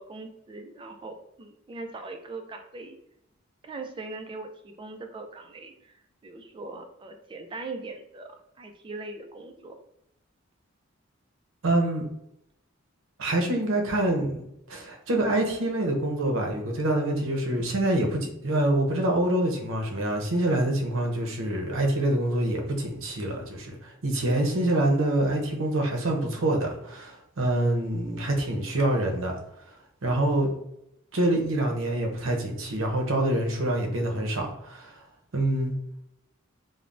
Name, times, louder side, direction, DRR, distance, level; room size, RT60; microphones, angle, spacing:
voice 1, 0.0-3.0 3.6-5.9 6.2-8.3 8.6-9.7, right 3 dB, 25° right, 5 dB, 0.3 m, -40 dB
voice 2, 11.6-12.1 13.2-29.3 30.0-30.5 31.1-35.0 35.3-35.7, right 1 dB, 70° right, 2 dB, 0.6 m, -26 dB
3.2 x 2.0 x 2.5 m, 0.81 s
head